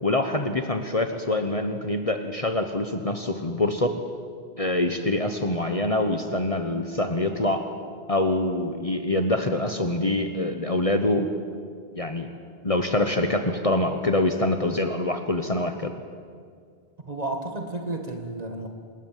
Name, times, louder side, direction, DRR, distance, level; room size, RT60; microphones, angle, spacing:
voice 1, 0.0-4.0 4.6-7.7 8.1-11.3 12.0-12.3 12.6-15.9, left 2 dB, 35° left, 6 dB, 1.2 m, -25 dB
voice 2, 17.0-18.7, right 2 dB, 40° right, 3 dB, 1.8 m, -32 dB
26.5 x 20.5 x 7.5 m, 2.1 s
omnidirectional pair, 1.1 m